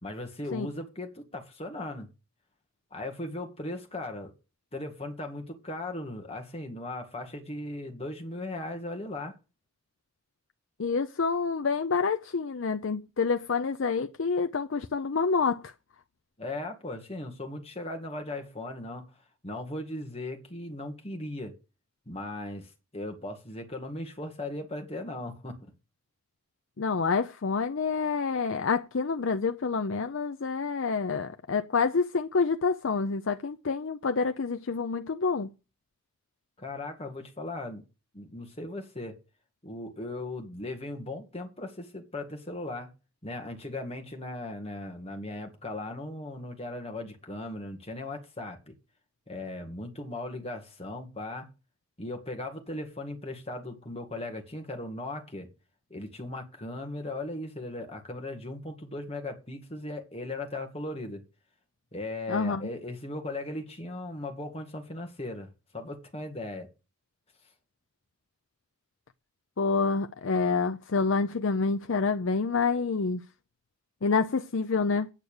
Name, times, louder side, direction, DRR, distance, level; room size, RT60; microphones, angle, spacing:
voice 1, 0.0-2.1 2.9-4.3 4.7-9.3 16.4-19.1 19.4-21.5 22.1-25.7 36.6-37.8 38.1-39.2 39.6-42.9 43.2-48.7 49.3-51.5 52.0-55.5 55.9-61.2 61.9-66.7, left 2 dB, 30° left, 1.9 m, -38 dB
voice 2, 10.8-15.6 26.8-35.5 62.3-62.7 69.6-73.2 74.0-75.1, left 4 dB, 70° left, 0.6 m, -27 dB
8.9 x 8.1 x 6.5 m
head